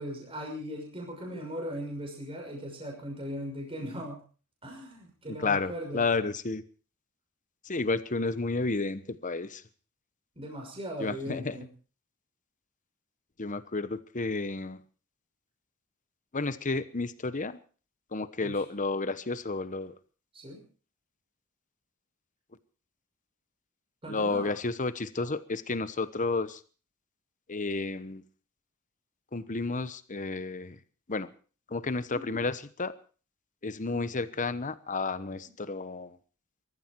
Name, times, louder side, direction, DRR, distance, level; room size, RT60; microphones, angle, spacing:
voice 1, 0.0-4.2 4.6-6.1 10.4-11.7 18.4-18.6 20.3-20.6 24.0-24.5 32.1-32.4 33.9-34.2, equal, 25° right, 0 dB, 6.1 m, -39 dB
voice 2, 5.3-6.6 7.6-9.6 11.0-11.6 13.4-14.8 16.3-17.6 18.1-19.9 24.1-26.6 27.5-28.2 29.3-30.8 31.1-31.3 31.7-32.9 33.6-36.2, left 3 dB, 35° left, 14 dB, 1.0 m, -31 dB
22.5 x 14.0 x 4.6 m, 0.39 s
head